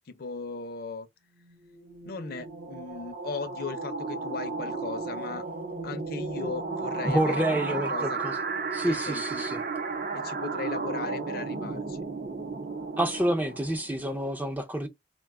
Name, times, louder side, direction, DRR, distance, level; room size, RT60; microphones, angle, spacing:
voice 1, 0.1-1.1 2.0-5.4 5.8-8.2 8.8-9.5 10.1-12.0, left 4 dB, 50° left, 0.5 m, -37 dB
sound 1, 1.4-14.0, right 3 dB, 50° right, 0.6 m, -34 dB
voice 2, 7.0-8.3 8.7-9.6 13.0-14.9, right 1 dB, 10° right, 0.4 m, -28 dB
2.5 x 2.2 x 3.4 m
head